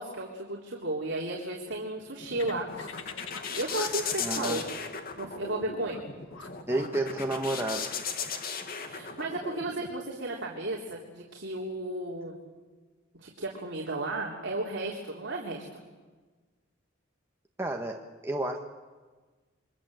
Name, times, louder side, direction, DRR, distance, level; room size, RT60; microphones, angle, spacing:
voice 1, 0.0-2.8 3.6-4.7 5.2-6.0 8.8-12.4 13.2-15.8, right 2 dB, 60° right, -1 dB, 3.5 m, -34 dB
sound 1, 2.0-9.9, left 5 dB, 45° left, 2.1 m, -37 dB
sound 2, 2.4-7.9, left 7 dB, 75° left, 1.6 m, -46 dB
voice 2, 4.2-4.6 6.7-8.0 17.6-18.7, right 1 dB, 10° right, 2 dB, 1.5 m, -31 dB
28.5 x 23.5 x 7.8 m, 1.3 s
head